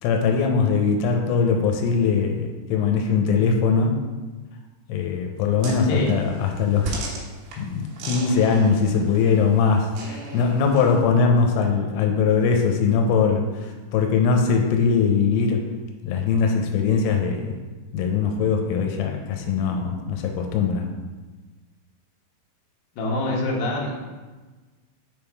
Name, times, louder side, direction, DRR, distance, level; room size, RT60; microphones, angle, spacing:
voice 1, 0.0-4.0 4.9-7.0 7.6-15.7 16.0-17.6 17.9-20.9, left 5 dB, 90° left, 3 dB, 3.0 m, -21 dB
sound 1, 5.6-11.0, right 3 dB, 75° right, 3.1 m, -37 dB
voice 2, 23.0-23.9, left 1 dB, 70° left, -3 dB, 2.7 m, -24 dB
7.0 x 3.6 x 4.6 m, 1.3 s
omnidirectional pair, 5.3 m